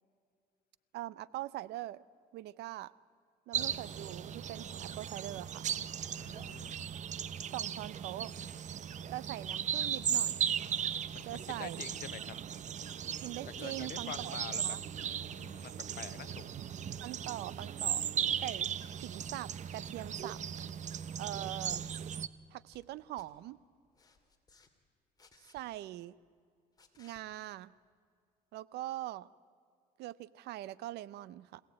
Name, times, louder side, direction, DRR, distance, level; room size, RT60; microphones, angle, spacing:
voice 1, 0.9-2.0 2.3-2.9 3.5-5.6 7.5-8.3 9.1-10.5 11.2-11.9 13.2-14.4 14.6-14.8 17.0-18.0 18.4-18.7 18.9-20.4 21.2-21.8 22.5-23.6 25.5-26.1 27.0-27.7 28.5-29.3 30.0-31.6, right 15 dB, 80° right, 20 dB, 0.7 m, -42 dB
sound 1, 3.5-22.3, right 8 dB, 45° right, 0.8 m, -37 dB
voice 2, 6.2-6.9 11.1-12.3 13.5-14.6 15.3-16.5, left 13 dB, 60° left, 17 dB, 0.8 m, -47 dB
sound 2, 19.3-19.5 20.0-20.4 20.7-21.0 21.6-21.9 22.4-22.9 23.2-23.3 23.9-24.7 25.2-25.6 26.8-27.2 28.9-29.0, left 3 dB, 20° left, 2.5 m, -63 dB
25.5 x 17.0 x 8.8 m, 2.3 s
cardioid pair, 110°, 17 cm